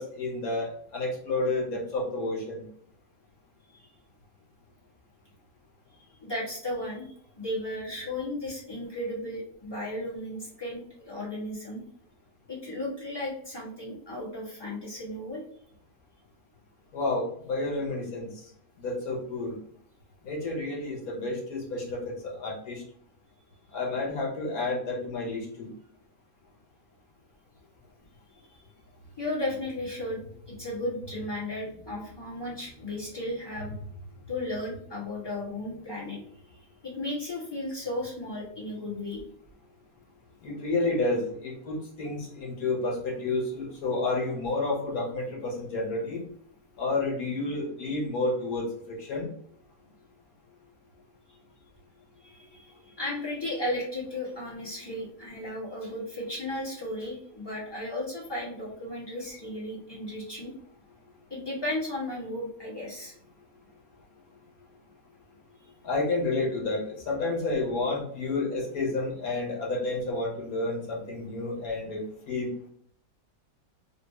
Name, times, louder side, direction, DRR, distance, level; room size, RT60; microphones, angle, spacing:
voice 1, 0.0-2.7 16.9-18.3 18.8-19.6 20.2-22.8 23.7-25.7 40.4-46.2 46.8-49.3 65.8-72.5, left 2 dB, 75° left, -2 dB, 1.6 m, -30 dB
voice 2, 6.2-11.8 12.5-15.4 23.7-23.8 28.4-28.6 29.2-33.9 34.3-36.2 36.8-39.2 52.2-60.5 61.3-63.1, left 1 dB, 15° left, -6 dB, 1.3 m, -35 dB
3.5 x 2.4 x 3.1 m, 0.63 s
omnidirectional pair, 1.6 m